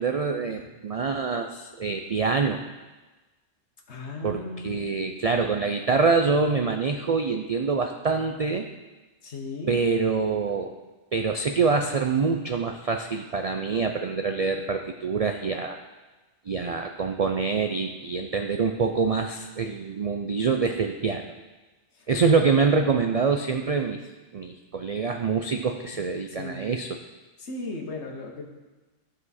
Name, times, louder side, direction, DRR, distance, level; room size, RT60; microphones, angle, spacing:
voice 1, 0.0-2.6 4.2-8.7 9.7-10.7 11.1-15.8 16.5-21.2 22.1-24.0 24.3-27.0, right 4 dB, 65° right, 5 dB, 0.3 m, -25 dB
voice 2, 3.9-4.8 9.2-9.8 21.9-22.1 25.9-26.1 26.4-26.8 27.4-28.5, left 3 dB, 60° left, 0 dB, 1.6 m, -36 dB
14.5 x 5.0 x 4.2 m, 1.2 s
omnidirectional pair, 1.3 m